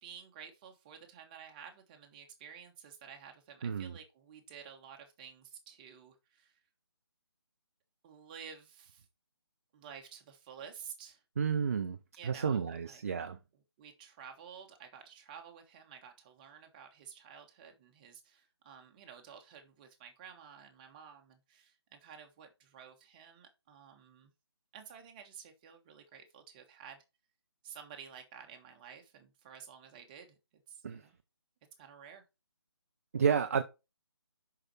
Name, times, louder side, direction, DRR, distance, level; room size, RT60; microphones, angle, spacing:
voice 1, 0.0-6.6 8.0-9.1 9.7-11.2 12.1-13.0 13.8-24.3 24.7-27.0 27.6-30.4 30.7-31.2 31.8-32.2, right 7 dB, 20° right, 1.3 m, -52 dB
voice 2, 3.6-3.9 11.4-12.0 12.2-13.4 30.8-31.0 33.1-33.6, right 6 dB, 35° right, 0.6 m, -31 dB
6.4 x 5.9 x 4.2 m
figure-of-eight pair, 145°, 14 cm